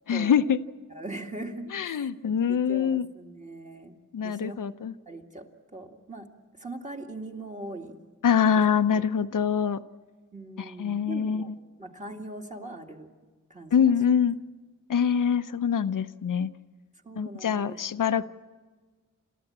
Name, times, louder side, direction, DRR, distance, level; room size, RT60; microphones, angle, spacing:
voice 1, 0.1-0.6 1.7-3.1 4.1-4.9 8.2-9.8 10.6-11.5 13.7-14.4 14.9-16.5 17.2-18.3, left 7 dB, 75° left, 10 dB, 0.7 m, -24 dB
voice 2, 0.9-4.0 4.2-4.6 5.1-6.3 6.6-8.0 10.3-11.5 11.8-13.1 13.5-13.9 17.0-17.8, right 2 dB, 25° right, 2 dB, 2.1 m, -41 dB
29.0 x 13.5 x 8.7 m, 1.4 s
wide cardioid pair, 100°, 32 cm